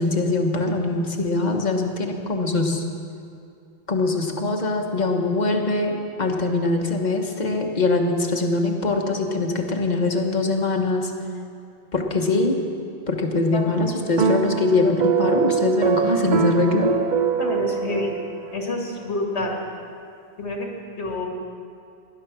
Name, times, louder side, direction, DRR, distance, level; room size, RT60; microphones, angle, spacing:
voice 1, 0.0-2.8 3.9-11.1 11.9-12.6 13.1-16.9, left 3 dB, 40° left, 3 dB, 1.5 m, -22 dB
sound 1, 14.2-18.6, right 6 dB, 50° right, 0.7 m, -23 dB
voice 2, 17.4-18.1 18.5-19.6 20.4-21.3, left 2 dB, 85° left, 0 dB, 2.4 m, -28 dB
19.0 x 11.0 x 6.1 m, 2.5 s
omnidirectional pair, 1.1 m